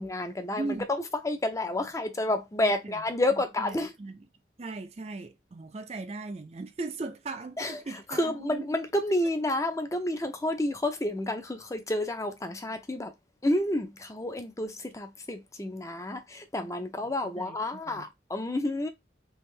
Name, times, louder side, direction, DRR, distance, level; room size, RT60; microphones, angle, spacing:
voice 1, 0.0-3.9 7.6-7.8 8.1-13.1 13.4-18.9, left 1 dB, 15° left, 0.5 m, -30 dB
voice 2, 0.6-0.9 2.6-2.9 3.6-4.3 4.6-8.7 17.0-18.1, right 3 dB, 35° right, 0.4 m, -38 dB
3.5 x 2.6 x 3.2 m
head